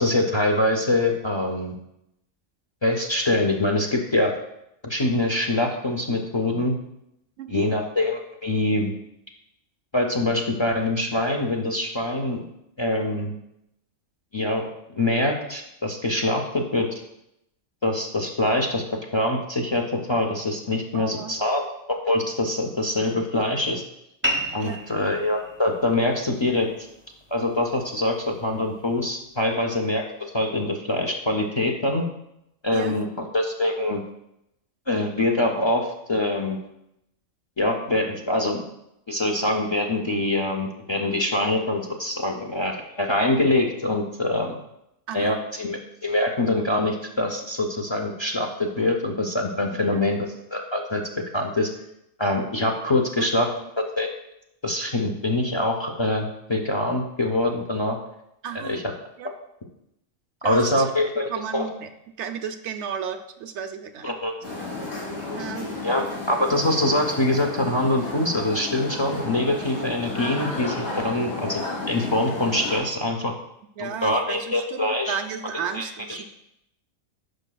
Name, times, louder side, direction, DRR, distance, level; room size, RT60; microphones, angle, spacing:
voice 1, 0.0-1.7 2.8-4.3 4.8-6.7 7.5-8.9 9.9-12.4 12.8-13.3 14.3-16.9 17.8-18.8 19.1-19.8 20.1-21.6 21.9-23.8 24.5-26.7 27.3-30.0 30.3-32.0 32.6-34.0 34.9-36.6 37.6-38.7 39.1-44.6 45.1-51.0 51.3-51.7 52.2-53.5 54.0-54.1 54.6-58.0 58.5-58.8 60.4-61.7 64.0-64.3 65.8-71.6 71.9-73.3 73.8-75.2 75.7-76.2, left 1 dB, 45° left, 2 dB, 0.3 m, -24 dB
voice 2, 20.9-21.4 24.6-24.8 32.7-32.9 45.1-45.3 49.9-50.0 53.2-53.3 58.4-58.8 59.2-59.3 60.4-60.8 61.3-61.9 62.2-64.1 65.3-65.7 73.8-76.3, right 7 dB, 65° right, 6 dB, 0.9 m, -33 dB
sound 1, 24.2-29.3, equal, 10° right, 0.7 m, -34 dB
sound 2, 64.4-72.8, left 2 dB, 65° left, 3.3 m, -32 dB
11.5 x 4.9 x 2.3 m, 0.81 s
omnidirectional pair, 1.4 m